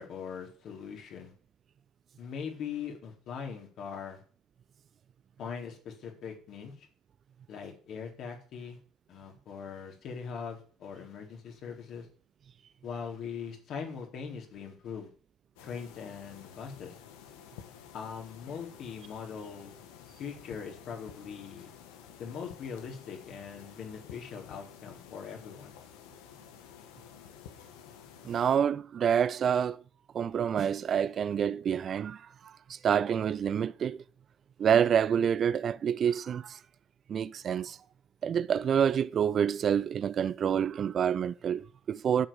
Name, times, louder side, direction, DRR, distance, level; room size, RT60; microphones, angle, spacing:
voice 1, 0.0-1.3 2.2-4.2 5.4-6.9 7.5-8.8 9.1-12.1 12.8-15.1 15.6-16.9 17.9-19.7 20.2-21.7 22.2-25.8, left 6 dB, 60° left, 4.3 m, -41 dB
sound 1, 15.6-28.6, left 8 dB, 80° left, 1.9 m, -51 dB
voice 2, 28.2-29.8 30.1-32.2 32.7-34.0 34.6-36.6 37.1-37.8 38.2-42.3, right 8 dB, 45° right, 0.6 m, -27 dB
11.0 x 8.1 x 7.4 m
hypercardioid pair, 70°, 0 cm